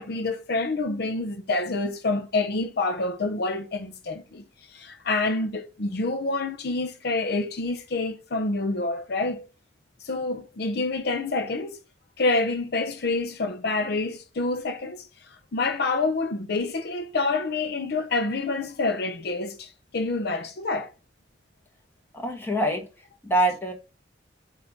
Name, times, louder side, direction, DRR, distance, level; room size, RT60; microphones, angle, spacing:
voice 1, 0.0-9.4 10.0-11.8 12.2-15.1 15.5-20.9, left 3 dB, 60° left, 0.6 m, -27 dB
voice 2, 22.1-22.8 23.2-23.7, right 1 dB, 10° left, 1.4 m, -24 dB
7.9 x 2.8 x 5.0 m
head